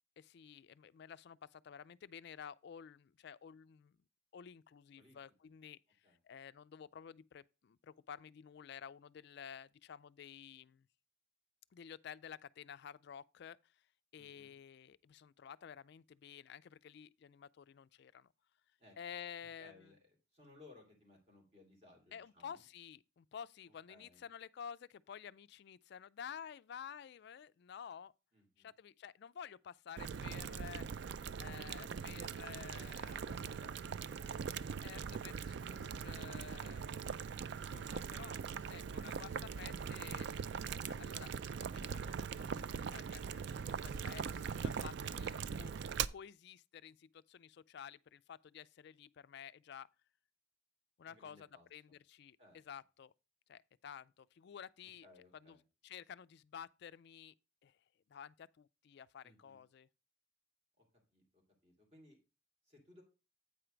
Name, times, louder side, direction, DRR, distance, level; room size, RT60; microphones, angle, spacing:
voice 1, 0.2-4.0 4.3-10.9 11.7-13.8 14.1-18.3 19.0-19.9 22.1-28.1 28.6-31.0 31.4-33.2 34.8-44.2 44.6-49.9 51.0-53.1 53.5-55.1 55.3-55.6 55.8-57.3 57.6-57.8 58.1-59.9, left 8 dB, 55° left, 0.3 m, -52 dB
voice 2, 14.1-14.5 18.8-19.0 19.6-22.6 23.9-24.2 28.3-28.7 33.1-34.5 36.8-37.1 51.0-51.7 52.4-52.6 55.0-55.6 59.2-59.6 60.8-60.9 61.1-62.2 62.6-63.0, left 2 dB, 30° right, 2.8 m, -62 dB
Boiling, 30.0-46.1, right 6 dB, 55° right, 0.3 m, -41 dB
8.7 x 4.5 x 5.0 m
head